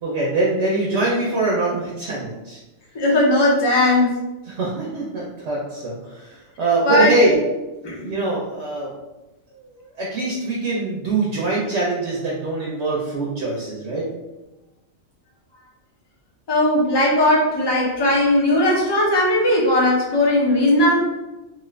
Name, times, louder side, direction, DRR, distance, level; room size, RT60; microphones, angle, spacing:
voice 1, 0.0-2.6 4.5-7.4 8.0-8.9 9.6-14.0, right 2 dB, 65° right, -4 dB, 0.9 m, -23 dB
voice 2, 2.9-4.1 6.8-7.4 7.8-8.1 16.5-21.0, left 1 dB, 30° left, -3 dB, 0.5 m, -18 dB
2.6 x 2.4 x 3.1 m, 1.0 s
omnidirectional pair, 1.3 m